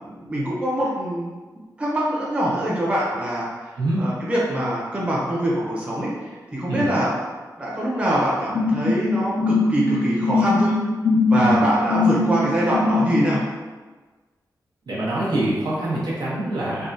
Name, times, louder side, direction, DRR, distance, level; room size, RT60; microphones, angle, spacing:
voice 1, 0.0-1.3 1.8-3.7 4.0-7.1 7.6-10.7 11.3-13.4, right 1 dB, 15° right, -6 dB, 0.7 m, -24 dB
sound 1, 8.5-13.3, left 3 dB, 70° left, 0.5 m, -21 dB
voice 2, 14.9-16.9, right 1 dB, 80° right, -7 dB, 0.9 m, -25 dB
3.4 x 2.2 x 2.6 m, 1.3 s
wide cardioid pair, 160°, 7 cm